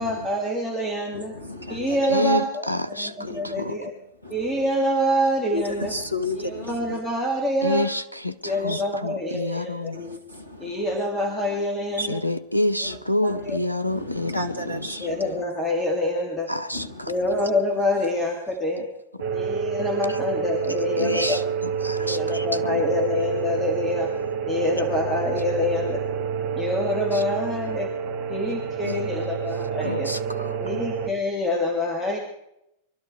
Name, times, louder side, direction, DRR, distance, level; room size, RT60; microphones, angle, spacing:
voice 1, 0.0-1.3 1.7-2.6 3.0-3.9 4.3-5.9 6.4-7.9 8.4-9.9 10.6-12.2 13.3-13.6 15.0-16.5 17.1-18.8 19.3-21.4 21.9-24.1 24.5-26.0 26.6-27.9 28.3-30.1 30.6-32.2, left 1 dB, 10° left, 0 dB, 3.3 m, -26 dB
voice 2, 1.1-2.1 3.2-3.8 4.2-4.6 5.5-7.0 8.4-8.8 9.9-11.0 12.0-12.1 12.8-13.0 13.3-13.6 13.9-15.4 16.7-17.5, left 2 dB, 85° right, 6 dB, 1.6 m, -34 dB
voice 3, 2.1-3.9 7.6-10.0 12.1-15.1 16.5-17.1 20.1-20.2 20.7-22.8 27.1-27.2 28.8-29.0 29.8-30.9, left 1 dB, 90° left, 10 dB, 1.0 m, -28 dB
sound 1, 19.2-31.1, right 6 dB, 50° right, 2.1 m, -28 dB
23.0 x 12.5 x 4.9 m, 0.82 s
figure-of-eight pair, 90°, 0 cm